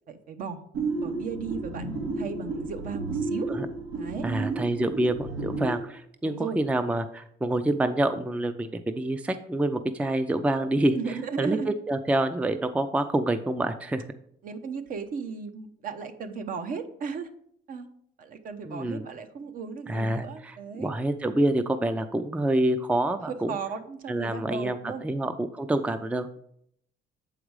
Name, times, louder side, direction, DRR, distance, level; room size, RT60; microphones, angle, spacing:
voice 1, 0.1-0.6 1.0-3.5 3.9-4.3 6.2-6.6 10.9-11.7 14.4-17.3 17.7-17.9 18.2-20.9 23.3-25.0, right 5 dB, 55° right, 8 dB, 0.9 m, -35 dB
sound 1, 0.7-5.8, right 3 dB, 85° right, 2.3 m, -32 dB
voice 2, 4.2-11.0 11.4-14.1 18.6-19.1 19.9-23.6 24.1-26.4, right 1 dB, 10° right, 10 dB, 0.4 m, -27 dB
7.2 x 4.9 x 4.8 m, 0.69 s
cardioid pair, 110°, 17 cm